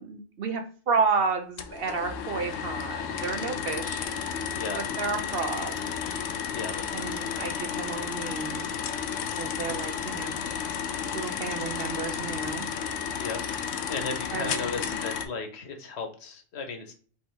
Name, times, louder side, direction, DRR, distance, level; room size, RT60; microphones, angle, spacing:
voice 1, 0.0-4.1 4.8-5.9 6.9-8.7 9.4-10.4 11.1-12.7 14.3-15.0, right 5 dB, 60° right, 5 dB, 0.8 m, -31 dB
sound 1, 1.6-15.3, left 7 dB, 90° left, 0.9 m, -32 dB
voice 2, 6.5-7.6 13.2-13.4 13.9-16.9, left 4 dB, 60° left, 5 dB, 1.0 m, -36 dB
3.4 x 2.9 x 4.3 m, 0.42 s
omnidirectional pair, 1.3 m